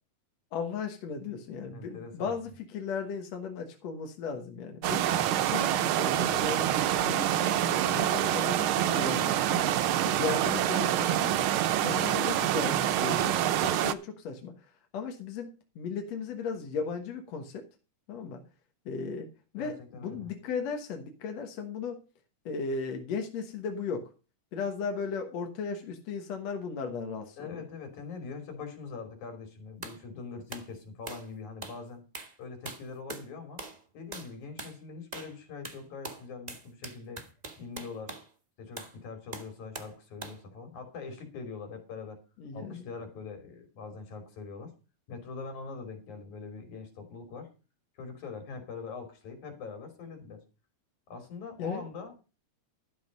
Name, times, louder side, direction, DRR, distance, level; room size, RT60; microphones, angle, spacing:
voice 1, 0.5-5.1 5.4-6.7 7.0-9.7 10.0-17.7 18.1-18.4 18.9-22.0 22.5-24.1 24.5-27.7 42.4-42.9 51.6-51.8, left 5 dB, 65° left, 4 dB, 2.4 m, -36 dB
voice 2, 1.7-2.3 5.1-5.3 19.6-20.3 27.4-32.0 32.4-33.6 33.9-37.2 37.6-38.1 38.6-42.2 42.5-44.7 45.1-47.5 47.9-50.4 51.1-52.2, left 4 dB, 80° left, 6 dB, 4.5 m, -43 dB
sound 1, 4.8-13.9, right 11 dB, 80° right, 1.1 m, -26 dB
sound 2, 29.8-30.0 30.5-30.7 31.1-31.3 31.6-31.8 32.1-32.4 32.7-33.3 33.6-33.8 34.1-34.3 34.6-34.8 35.1-35.4 35.6-38.3 38.8-39.0 39.3-40.0 40.2-40.4, right 3 dB, 35° right, 0.6 m, -42 dB
12.5 x 7.3 x 5.3 m, 0.33 s
omnidirectional pair, 3.3 m